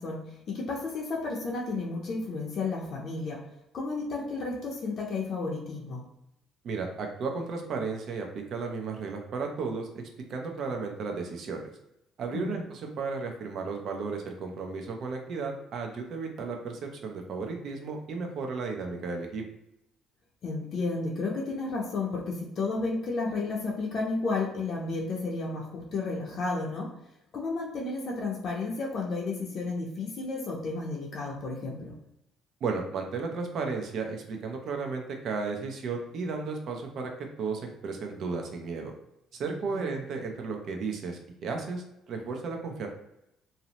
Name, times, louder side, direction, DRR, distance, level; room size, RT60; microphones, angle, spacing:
voice 1, 0.0-3.4 3.7-6.0 12.3-12.6 20.4-26.9 27.3-31.9 39.7-39.8, left 3 dB, 50° left, -2 dB, 0.5 m, -32 dB
voice 2, 6.6-11.7 12.2-19.4 32.6-38.9 39.4-42.9, right 4 dB, 55° right, 3 dB, 0.5 m, -34 dB
2.6 x 2.0 x 2.8 m, 0.85 s
cardioid pair, 110°, 0 cm